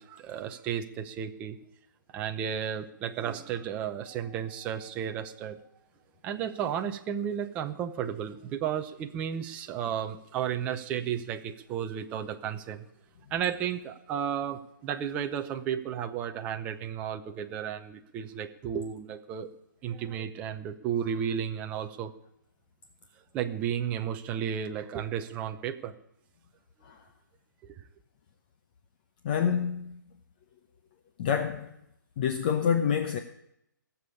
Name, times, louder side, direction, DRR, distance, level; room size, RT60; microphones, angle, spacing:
voice 1, 0.0-1.6 2.1-5.6 6.2-12.8 13.3-19.5 19.8-22.1 23.3-25.9 27.6-27.8, right 9 dB, 10° right, 0.6 m, -33 dB
voice 2, 29.2-29.9 31.2-31.7 32.2-33.2, left 7 dB, 25° left, 0.8 m, -27 dB
16.5 x 7.1 x 8.5 m
hypercardioid pair, 165°, 11 cm